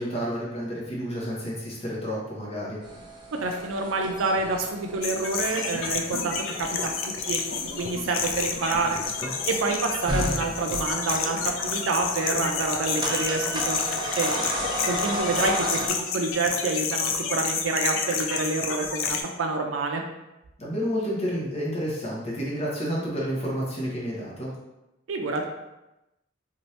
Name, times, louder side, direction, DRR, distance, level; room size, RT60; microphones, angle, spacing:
voice 1, 0.0-2.8 8.8-9.3 20.6-24.5, equal, 30° left, -5 dB, 0.8 m, -30 dB
sound 1, 2.8-15.9, equal, 20° right, 0.4 m, -34 dB
voice 2, 3.4-7.4 7.8-9.0 9.5-14.4 14.9-15.8 16.1-20.0 25.1-25.5, right 3 dB, 75° right, 3 dB, 0.4 m, -27 dB
sound 2, 5.0-19.2, left 5 dB, 75° left, 0.4 m, -30 dB
2.8 x 2.5 x 3.1 m, 0.95 s
head